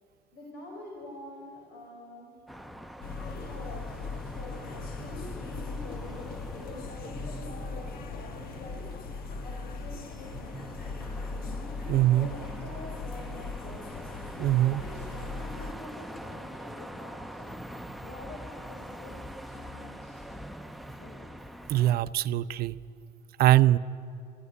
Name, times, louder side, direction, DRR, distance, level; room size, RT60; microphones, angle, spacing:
voice 1, 0.3-2.4 3.2-4.0 4.3-8.9 9.4-11.5 12.1-13.8 14.5-17.6 18.0-19.2 19.5-20.2 21.0-21.2, left 2 dB, 85° left, -1 dB, 4.9 m, -46 dB
sound 1, 2.5-22.0, equal, ahead, 0.7 m, -44 dB
sound 2, 3.0-15.7, left 4 dB, 60° left, 1.5 m, -39 dB
voice 2, 11.9-12.3 14.4-14.8 21.7-22.8 23.4-23.8, right 14 dB, 65° right, 13 dB, 0.6 m, -22 dB
26.5 x 14.5 x 10.0 m, 2.6 s
cardioid pair, 110°, 17 cm